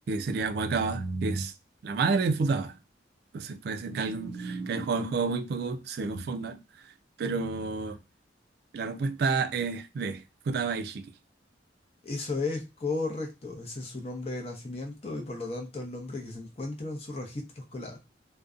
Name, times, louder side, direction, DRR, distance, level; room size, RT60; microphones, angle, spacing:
voice 1, 0.1-1.5 1.8-2.8 3.3-6.6 7.2-8.0 8.7-11.1, right 4 dB, 60° right, 0.3 m, -30 dB
voice 2, 12.0-18.0, left 3 dB, 35° left, 0.6 m, -35 dB
2.5 x 2.1 x 2.3 m
head